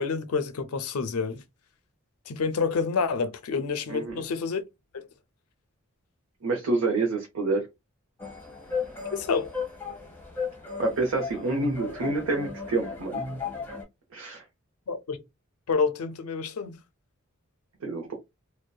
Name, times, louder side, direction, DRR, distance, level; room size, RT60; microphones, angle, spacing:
voice 1, 0.0-1.4 2.3-4.6 4.9-5.1 9.1-9.5 14.9-15.2 15.7-16.8, left 5 dB, 85° left, 0.5 m, -28 dB
voice 2, 3.9-4.2 6.4-7.7 10.8-13.2 14.1-14.4 17.8-18.1, right 3 dB, 85° right, 0.7 m, -27 dB
sound 1, 8.2-13.8, left 4 dB, 10° left, 0.7 m, -35 dB
2.7 x 2.1 x 2.2 m
head